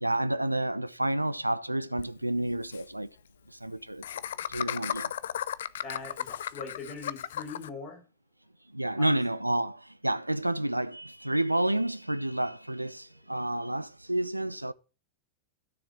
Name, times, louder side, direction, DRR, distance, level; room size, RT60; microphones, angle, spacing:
voice 1, 0.0-3.1 3.5-4.2 4.5-5.1 8.7-14.7, right 1 dB, 85° right, 0.5 m, -30 dB
Laughter, 2.0-2.1 2.3-2.4 2.6-2.8 4.0-7.7, left 10 dB, 60° left, 0.6 m, -35 dB
voice 2, 5.8-8.0 9.0-9.2, left 4 dB, 40° left, 4.1 m, -41 dB
13.0 x 7.2 x 7.2 m
figure-of-eight pair, 90°, 0 cm